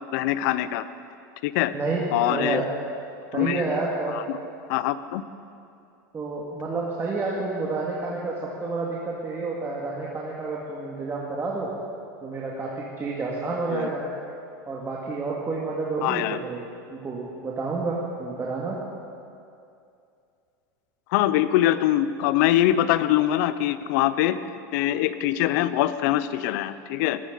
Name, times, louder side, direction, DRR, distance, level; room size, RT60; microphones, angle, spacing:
voice 1, 0.1-0.8 1.4-1.7 2.1-2.6 3.3-3.6 4.1-4.4 4.7-5.2 13.7-13.9 16.0-16.4 21.1-24.4 24.7-27.2, left 13 dB, 65° left, 14 dB, 0.7 m, -23 dB
voice 2, 1.7-2.6 3.3-4.2 6.1-11.7 12.2-14.0 14.7-16.6 16.9-18.8, right 3 dB, 25° right, -4 dB, 2.3 m, -29 dB
19.5 x 15.5 x 4.1 m, 2.5 s
hypercardioid pair, 95°, 11 cm